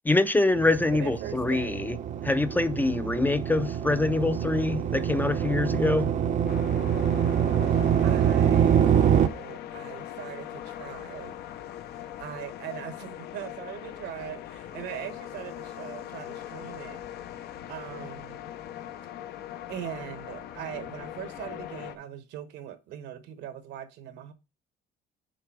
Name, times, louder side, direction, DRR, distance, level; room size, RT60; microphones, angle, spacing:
voice 1, 0.1-2.0 2.2-6.1, left 2 dB, 10° left, 0.4 m, -25 dB
sound 1, 0.6-9.3, right 9 dB, 45° right, 0.6 m, -25 dB
voice 2, 0.9-1.8 7.7-11.4 12.2-17.0 17.7-18.4 19.7-24.3, right 10 dB, 80° right, 1.1 m, -41 dB
sound 2, 6.5-22.0, left 11 dB, 75° left, 0.7 m, -41 dB
6.7 x 4.1 x 4.7 m
cardioid pair, 110°, 17 cm